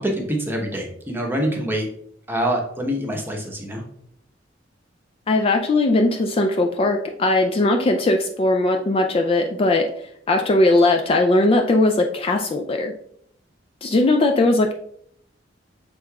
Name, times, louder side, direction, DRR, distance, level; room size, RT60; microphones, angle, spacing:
voice 1, 0.0-1.9 2.3-3.8, equal, 10° right, 0 dB, 0.9 m, -25 dB
voice 2, 5.3-9.9 10.3-12.9 13.8-14.7, left 2 dB, 30° left, 4 dB, 0.3 m, -19 dB
6.3 x 3.7 x 2.3 m, 0.67 s
head